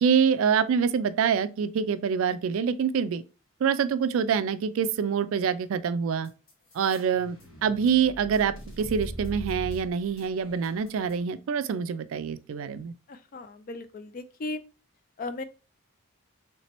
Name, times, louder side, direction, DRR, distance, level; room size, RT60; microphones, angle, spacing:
voice 1, 0.0-3.2 3.6-6.3 6.7-7.4 7.6-12.9, right 7 dB, 65° right, 0.3 m, -25 dB
sound 1, 6.2-11.2, equal, 60° left, 1.4 m, -40 dB
voice 2, 13.1-14.6 15.2-15.4, left 2 dB, 40° left, 0.3 m, -36 dB
3.3 x 3.0 x 2.9 m
head